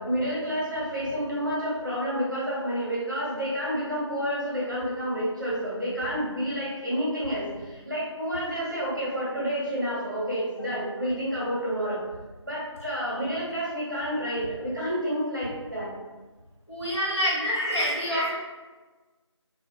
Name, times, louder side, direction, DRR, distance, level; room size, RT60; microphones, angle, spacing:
voice 1, 0.0-12.0 12.5-15.9 17.3-18.3, equal, 40° right, -7 dB, 0.8 m, -29 dB
voice 2, 16.7-18.4, equal, 60° left, -6 dB, 1.0 m, -27 dB
2.3 x 2.3 x 2.6 m, 1.3 s
figure-of-eight pair, 170°, 16 cm